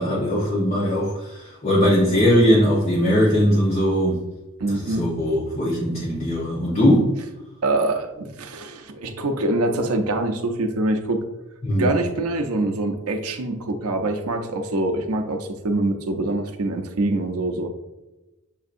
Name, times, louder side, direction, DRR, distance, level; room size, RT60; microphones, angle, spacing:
voice 1, 0.0-4.2 4.7-7.1 11.6-12.0, equal, 30° left, -8 dB, 0.8 m, -20 dB
voice 2, 4.6-5.1 7.6-11.2 11.8-17.7, right 2 dB, 90° right, 5 dB, 0.6 m, -24 dB
7.1 x 2.6 x 2.5 m, 1.0 s
head